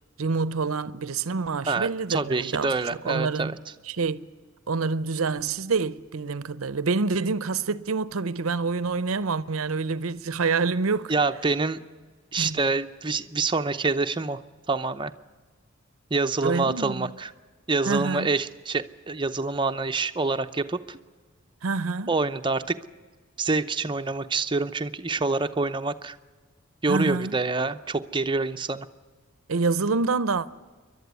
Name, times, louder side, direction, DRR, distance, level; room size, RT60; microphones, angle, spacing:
voice 1, 0.2-2.7 3.1-3.6 3.9-4.3 4.7-11.1 12.4-12.6 16.4-17.1 17.9-18.3 21.6-22.1 26.9-27.4 29.5-30.5, right 4 dB, 90° right, 0.7 m, -27 dB
voice 2, 1.7-3.5 11.1-11.8 12.3-14.4 14.7-15.1 16.1-17.3 17.7-21.0 22.1-22.8 23.4-26.2 26.8-28.9, right 3 dB, 25° right, 0.7 m, -26 dB
28.5 x 12.0 x 9.5 m
head